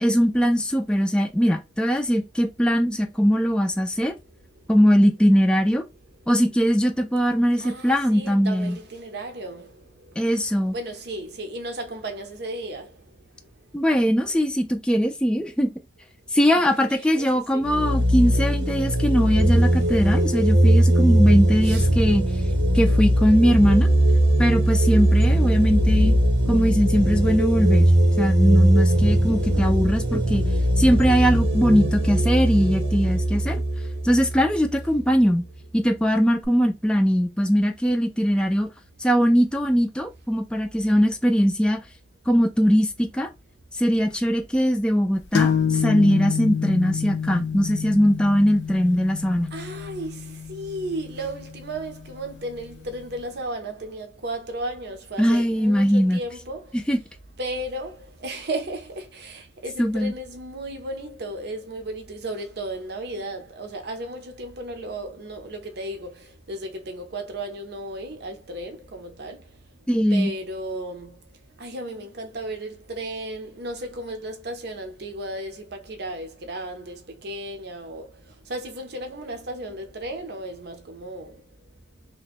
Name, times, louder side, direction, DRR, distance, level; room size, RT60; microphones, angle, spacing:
voice 1, 0.0-4.2 4.7-5.8 6.3-8.8 10.2-10.7 13.7-15.7 16.3-22.3 22.7-23.9 24.4-26.2 26.5-27.9 28.2-30.5 30.8-33.6 34.0-35.5 35.7-38.7 39.0-41.8 42.3-43.3 43.8-49.5 55.2-56.2 56.7-57.0 59.8-60.1 69.9-70.3, equal, 5° left, 0.4 m, -21 dB
voice 2, 7.6-10.2 10.7-13.1 16.5-16.7 17.1-17.6 21.6-21.8 49.5-56.8 57.4-69.6 70.1-71.2 71.6-81.4, right 1 dB, 65° right, 0.7 m, -34 dB
sound 1, 17.6-35.0, right 1 dB, 80° right, 1.0 m, -20 dB
sound 2, 45.3-52.8, left 7 dB, 75° left, 0.4 m, -28 dB
2.9 x 2.2 x 4.1 m
head